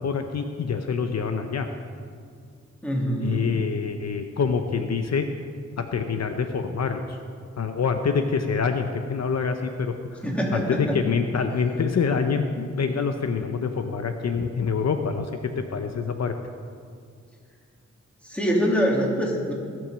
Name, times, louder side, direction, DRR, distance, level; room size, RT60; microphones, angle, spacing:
voice 1, 0.0-1.7 3.2-5.3 5.8-7.2 7.6-10.2 10.5-15.3 15.6-16.3, left 5 dB, 60° left, 6 dB, 0.8 m, -26 dB
voice 2, 2.8-3.6 10.2-11.0 18.3-19.5, equal, 5° left, -2 dB, 2.8 m, -24 dB
18.5 x 6.3 x 6.3 m, 2.2 s
cardioid pair, 80°, 30 cm